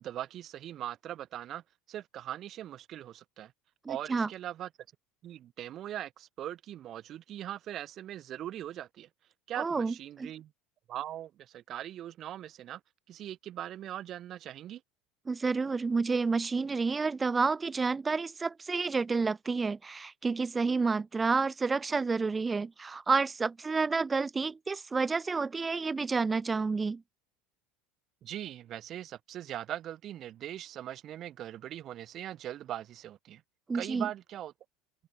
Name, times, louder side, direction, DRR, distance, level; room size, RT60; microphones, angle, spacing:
voice 1, 0.0-1.6 1.9-3.5 3.9-4.7 5.2-9.1 9.5-10.5 10.9-12.8 13.1-14.8 28.2-33.4 33.7-34.5, right 12 dB, 50° right, 1.5 m, -40 dB
voice 2, 3.8-4.3 9.6-10.3 15.3-27.0 33.7-34.1, right 4 dB, 20° right, 0.6 m, -30 dB
open air
hypercardioid pair, 85°, 0 cm